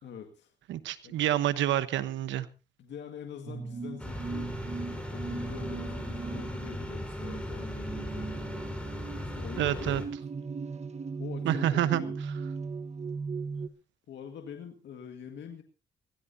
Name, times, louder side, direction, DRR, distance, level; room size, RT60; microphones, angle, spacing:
voice 1, 0.0-0.5 1.0-1.2 2.8-4.6 4.9-8.5 9.2-10.0 11.2-12.2 14.1-15.6, left 8 dB, 75° left, 1.9 m, -44 dB
voice 2, 0.7-2.5 9.6-10.0 11.4-12.0, right 12 dB, 90° right, 1.1 m, -28 dB
sound 1, 3.5-13.7, right 4 dB, 35° right, 1.3 m, -38 dB
sound 2, 4.0-10.1, left 1 dB, 5° left, 4.7 m, -38 dB
22.0 x 16.5 x 2.8 m
cardioid pair, 85°, 19 cm